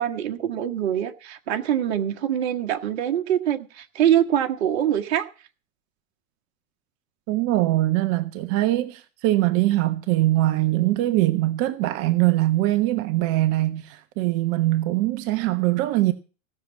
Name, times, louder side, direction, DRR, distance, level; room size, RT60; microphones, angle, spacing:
voice 1, 0.0-5.3, right 10 dB, 55° right, 1.5 m, -24 dB
voice 2, 7.3-16.1, right 16 dB, 35° right, 1.1 m, -22 dB
17.0 x 7.0 x 7.0 m
figure-of-eight pair, 100°, 39 cm